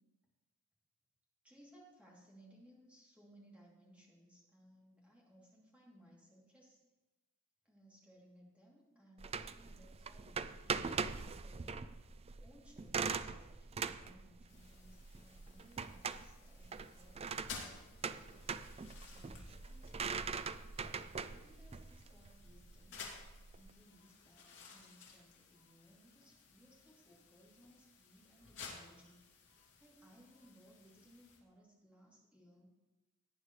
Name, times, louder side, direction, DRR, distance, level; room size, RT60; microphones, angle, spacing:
voice 1, 1.4-6.8 7.6-11.7 12.4-18.4 19.0-20.5 21.3-23.0 23.5-29.2 29.5-32.7, equal, 5° right, -5 dB, 3.1 m, -63 dB
sound 1, 9.2-23.7, right 5 dB, 25° right, 0.4 m, -42 dB
sound 2, 14.5-31.4, left 4 dB, 55° left, 2.7 m, -56 dB
17.5 x 9.7 x 3.3 m, 1.1 s
head